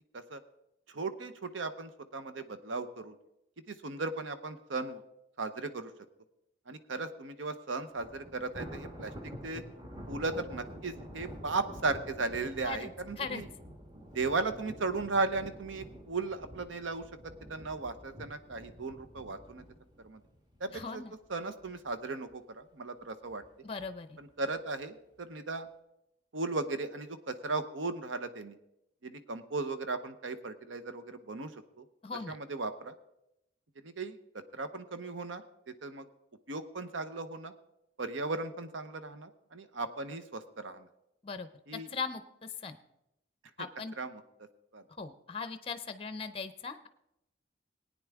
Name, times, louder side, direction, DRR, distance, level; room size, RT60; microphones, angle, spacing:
voice 1, 0.9-3.1 3.7-5.0 5.4-5.9 6.7-9.1 9.4-9.6 10.1-13.5 14.1-19.6 20.0-20.2 20.6-21.0 21.3-23.4 24.2-25.7 26.3-28.6 29.0-31.5 31.8-31.9 32.3-32.9 33.8-34.2 34.5-36.1 36.5-37.5 38.0-40.9 41.7-41.9 44.0-44.2 44.7-44.8, right 3 dB, 80° right, 11 dB, 0.8 m, -36 dB
Thunder, 7.9-21.2 21.6-21.9 22.3-22.4 23.3-23.9, equal, 20° right, 1.3 m, -48 dB
voice 2, 20.7-21.1 23.6-24.2 32.0-32.4 41.2-42.8 43.6-43.9 45.0-46.9, left 4 dB, 30° left, 11 dB, 0.5 m, -39 dB
18.0 x 9.4 x 3.5 m, 0.86 s
head